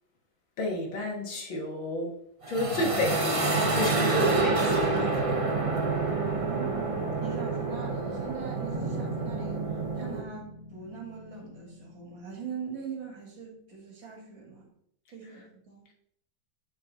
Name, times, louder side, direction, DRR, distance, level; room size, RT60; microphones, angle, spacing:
voice 1, 0.6-2.1 2.5-5.4, left 2 dB, 85° left, 1 dB, 2.3 m, -31 dB
sound 1, 2.4-10.2, right 3 dB, 30° right, 0.6 m, -28 dB
voice 2, 6.2-9.6 9.9-14.7 15.1-15.8, right 6 dB, 75° right, -1 dB, 2.8 m, -41 dB
sound 2, 8.7-13.1, left 2 dB, 40° left, 1.5 m, -42 dB
9.0 x 4.3 x 4.1 m, 0.72 s
omnidirectional pair, 2.1 m